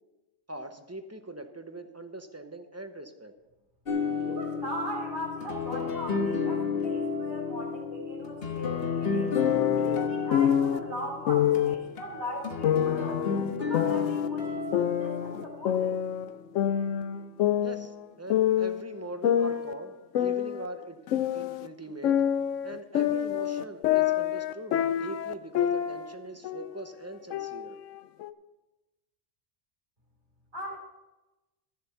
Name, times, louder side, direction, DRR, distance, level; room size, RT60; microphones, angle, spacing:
voice 1, 0.5-3.3 17.6-21.0 21.3-22.2 22.6-27.8, right 1 dB, 15° right, 6 dB, 0.7 m, -41 dB
sound 1, 3.9-16.3, left 5 dB, 55° left, 1.5 m, -32 dB
voice 2, 4.2-9.4 9.7-13.2 13.6-15.9 30.5-30.8, equal, 50° right, -5 dB, 3.4 m, -39 dB
sound 2, 9.3-10.8 11.3-11.8 12.6-14.3 14.7-16.3 16.6-18.8 19.2-21.7 22.0-26.1 26.4-26.8 27.3-28.3, left 10 dB, 85° left, 1.0 m, -27 dB
13.5 x 7.7 x 5.6 m, 1.1 s
omnidirectional pair, 1.3 m